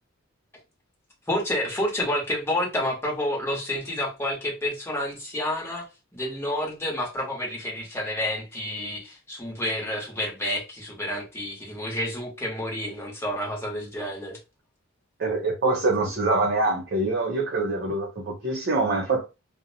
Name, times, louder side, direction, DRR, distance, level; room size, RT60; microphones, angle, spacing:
voice 1, 1.3-5.8 6.1-14.4, left 1 dB, 10° left, 0.9 m, -29 dB
voice 2, 15.2-19.3, right 2 dB, 50° right, 0.5 m, -25 dB
2.6 x 2.0 x 2.6 m
head